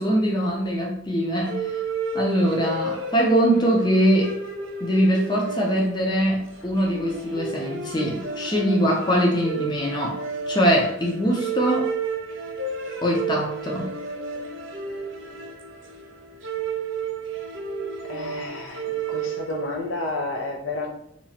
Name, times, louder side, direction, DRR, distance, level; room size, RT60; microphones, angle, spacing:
voice 1, 0.0-1.8 2.1-4.3 4.8-10.2 10.5-11.9 13.0-13.9, equal, 20° left, -1 dB, 0.6 m, -22 dB
sound 1, 1.5-20.0, right 5 dB, 75° right, 0.8 m, -32 dB
voice 2, 18.1-18.8 19.1-20.9, left 2 dB, 85° left, 1 dB, 0.7 m, -30 dB
2.9 x 2.4 x 4.2 m, 0.71 s
head